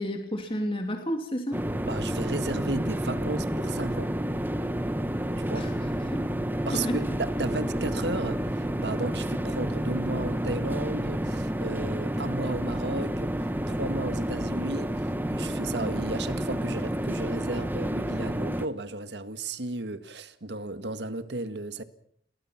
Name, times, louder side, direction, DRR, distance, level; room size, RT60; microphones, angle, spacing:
voice 1, 0.0-1.6 5.5-5.7 6.1-6.2 6.7-7.0, equal, 30° left, 2.9 m, -31 dB
sound 1, 1.5-18.7, right 1 dB, 10° right, 1.2 m, -30 dB
voice 2, 1.8-4.1 5.4-5.7 6.7-13.4 13.7-14.9 15.3-21.8, right 2 dB, 80° right, 1.8 m, -34 dB
28.5 x 21.0 x 5.9 m
head